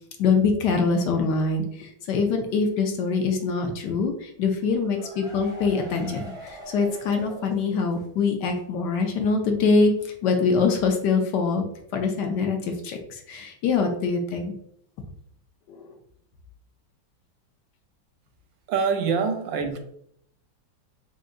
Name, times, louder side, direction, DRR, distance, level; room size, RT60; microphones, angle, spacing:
voice 1, 0.2-11.6 11.9-14.5 15.7-15.8, left 4 dB, 70° left, 4 dB, 1.1 m, -24 dB
sound 1, 4.6-8.2 8.5-8.6 8.9-9.0, right 1 dB, 5° right, 0.6 m, -42 dB
voice 2, 18.7-19.8, right 5 dB, 75° right, 6 dB, 1.2 m, -25 dB
3.8 x 3.8 x 2.5 m, 0.68 s
omnidirectional pair, 2.1 m